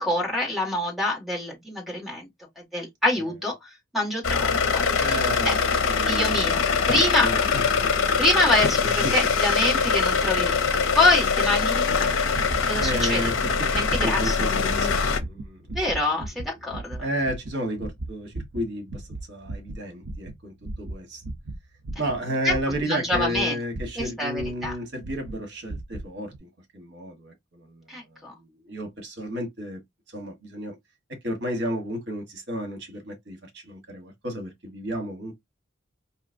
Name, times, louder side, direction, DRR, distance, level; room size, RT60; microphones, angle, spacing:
voice 1, 0.0-2.3 2.7-5.2 5.4-5.5 6.1-7.3 8.2-10.6 11.0-12.0 12.7-13.2 13.7-14.4 15.7-17.0 22.4-22.6 22.8-23.5 24.0-24.7 27.9-28.3, left 2 dB, ahead, 1.8 m, -25 dB
sound 1, 4.2-15.2, left 5 dB, 85° left, 0.6 m, -23 dB
voice 2, 5.0-5.6 5.9-6.8 7.2-7.8 8.8-9.2 12.8-13.7 14.0-15.6 17.0-21.2 22.0-29.8 30.1-30.7 31.1-35.4, equal, 60° right, 1.3 m, -32 dB
sound 2, 11.8-24.8 25.0-25.4 25.7-26.1 26.3-26.4, right 2 dB, 80° right, 0.6 m, -36 dB
5.0 x 2.8 x 2.6 m
head